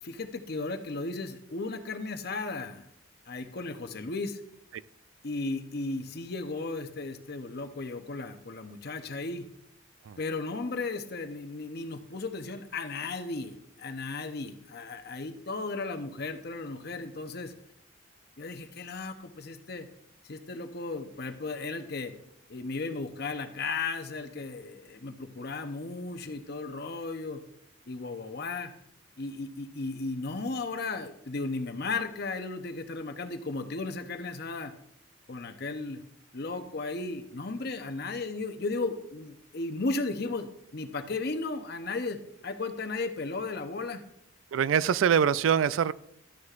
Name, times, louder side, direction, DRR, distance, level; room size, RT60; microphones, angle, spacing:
voice 1, 0.0-2.9 3.3-4.4 5.2-9.5 10.2-17.5 18.4-19.9 20.2-22.1 22.5-27.4 27.9-28.7 29.2-34.7 35.3-36.0 36.3-44.0, left 3 dB, 50° left, 7 dB, 0.8 m, -35 dB
voice 2, 44.5-45.9, right 8 dB, 75° right, 18 dB, 0.3 m, -24 dB
13.0 x 9.4 x 2.5 m, 0.75 s
head